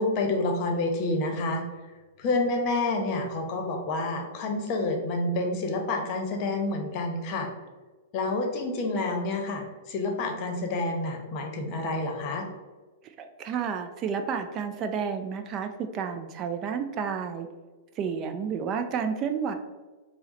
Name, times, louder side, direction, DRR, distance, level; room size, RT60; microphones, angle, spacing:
voice 1, 0.0-1.6 2.2-7.5 8.1-12.4, left 2 dB, 40° left, 3 dB, 0.8 m, -28 dB
voice 2, 13.0-17.5 18.0-19.6, right 6 dB, 35° right, 7 dB, 0.3 m, -31 dB
4.6 x 2.1 x 3.9 m, 1.3 s
hypercardioid pair, 110°, 0 cm